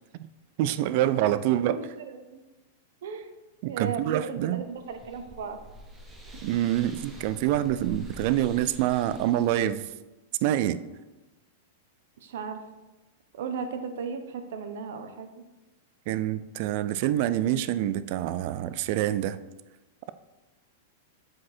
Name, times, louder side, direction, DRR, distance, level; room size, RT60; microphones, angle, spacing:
voice 1, 0.6-1.8 3.6-4.6 6.4-9.9 10.4-10.8 16.1-19.4, right 12 dB, 45° right, 14 dB, 0.3 m, -26 dB
voice 2, 1.7-2.4 3.0-3.3 3.6-5.6 12.2-12.6 13.3-15.3, right 6 dB, 70° right, 7 dB, 0.9 m, -35 dB
sound 1, 4.5-9.8, left 1 dB, 10° right, 0.8 m, -46 dB
7.5 x 4.3 x 4.3 m, 1.1 s
supercardioid pair, 160°, 0 cm